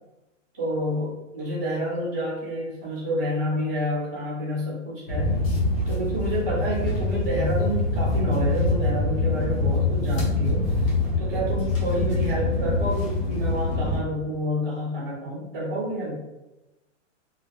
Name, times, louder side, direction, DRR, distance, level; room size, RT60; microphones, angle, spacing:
voice 1, 0.5-5.4 5.9-10.7 11.2-16.2, equal, 15° right, -4 dB, 0.3 m, -29 dB
sound 1, 5.1-14.0, left 2 dB, 25° left, 0.7 m, -24 dB
3.5 x 2.1 x 2.7 m, 1.0 s
hypercardioid pair, 165°, 38 cm